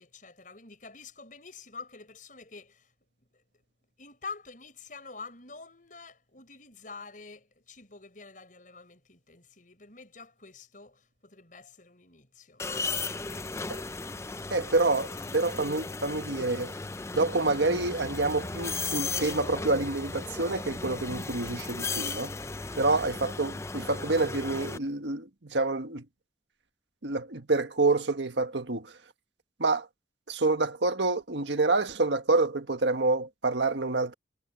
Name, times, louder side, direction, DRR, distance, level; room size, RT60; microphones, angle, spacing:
voice 1, 0.0-2.9 4.0-13.5, left 4 dB, 45° left, 6.1 m, -47 dB
sound 1, 12.6-24.8, left 3 dB, 15° left, 0.4 m, -36 dB
voice 2, 14.5-16.7 17.1-22.3 22.7-26.0 27.0-28.9 29.6-29.9 30.3-34.1, right 3 dB, 80° right, 1.6 m, -27 dB
head